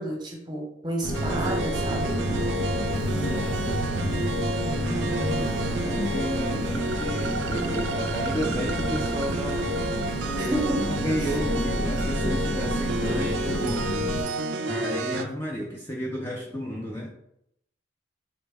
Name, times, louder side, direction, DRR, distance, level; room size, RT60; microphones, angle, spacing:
voice 1, 0.0-2.2 10.3-11.3, right 1 dB, 20° right, -1 dB, 0.8 m, -31 dB
sound 1, 1.0-14.2, equal, 85° left, 0.6 m, -29 dB
sound 2, 1.1-15.2, right 2 dB, 70° right, 0.3 m, -30 dB
voice 2, 3.1-4.2 5.3-14.0 14.7-17.1, equal, 15° left, -3 dB, 0.4 m, -33 dB
3.8 x 2.0 x 3.4 m, 0.75 s
head